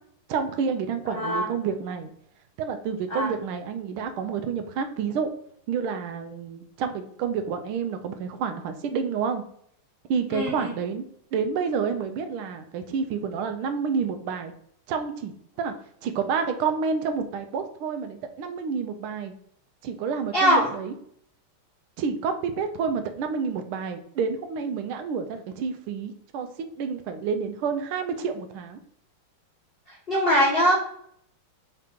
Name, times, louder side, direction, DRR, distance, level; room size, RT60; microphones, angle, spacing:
voice 1, 0.3-2.1 2.6-5.3 5.7-9.4 10.1-11.0 11.3-14.5 14.9-15.7 16.0-19.3 19.8-20.9 22.0-26.5 26.8-28.8, right 6 dB, 80° right, 7 dB, 1.5 m, -29 dB
voice 2, 1.1-1.5 3.1-3.3 10.3-10.7 20.3-20.7 29.9-30.7, equal, 60° left, -3 dB, 0.5 m, -22 dB
5.0 x 2.9 x 3.5 m, 0.67 s
omnidirectional pair, 2.3 m